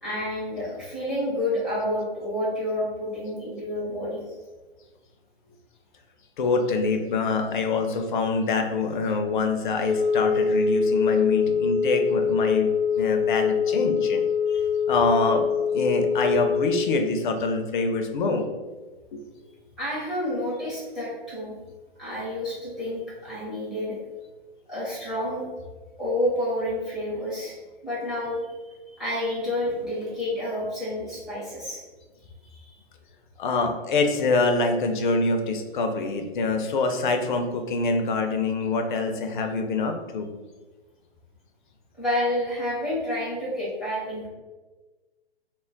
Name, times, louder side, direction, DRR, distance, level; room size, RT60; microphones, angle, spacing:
voice 1, 0.0-4.4 19.3-19.5 19.8-21.6 22.0-24.0 24.7-25.4 26.0-27.5 27.8-31.8 32.4-32.8 42.0-44.3, left 1 dB, ahead, -7 dB, 0.6 m, -29 dB
voice 2, 6.4-14.2 14.5-14.6 14.9-18.5 19.1-19.2 33.4-40.3, left 3 dB, 50° left, 5 dB, 0.4 m, -25 dB
Wind instrument woodwind instrument, 9.7-16.9, left 6 dB, 70° right, 0.6 m, -24 dB
2.2 x 2.0 x 3.6 m, 1.3 s
figure-of-eight pair, 120°, 31 cm